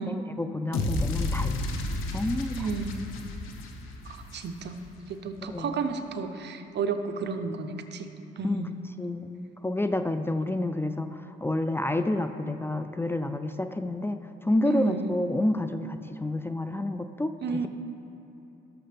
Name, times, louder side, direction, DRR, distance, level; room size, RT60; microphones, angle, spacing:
voice 1, 0.0-1.7 2.1-2.7 5.5-5.7 8.4-8.6 9.0-17.7, left 1 dB, 10° left, 9 dB, 0.4 m, -29 dB
sound 1, 0.7-5.0, left 2 dB, 90° left, 1.0 m, -32 dB
voice 2, 2.6-3.1 4.0-8.9 14.6-15.2 17.4-17.7, right 4 dB, 60° right, 7 dB, 0.8 m, -32 dB
17.5 x 6.5 x 3.4 m, 3.0 s
cardioid pair, 90°, 20 cm